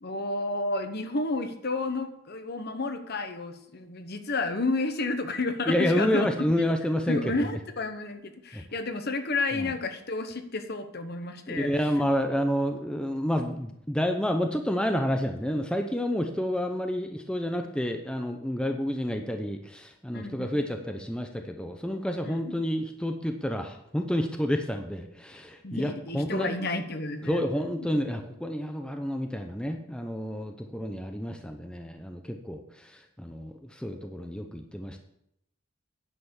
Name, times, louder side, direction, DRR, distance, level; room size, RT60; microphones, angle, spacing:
voice 1, 0.0-6.3 7.1-11.7 20.1-20.5 22.2-22.6 25.6-27.5 27.8-27.9, left 3 dB, 50° left, 8 dB, 1.1 m, -31 dB
voice 2, 5.7-7.5 8.5-8.6 9.5-9.7 11.5-26.5 27.2-35.0, equal, 5° left, 5 dB, 0.7 m, -29 dB
10.0 x 6.9 x 7.0 m, 0.77 s
head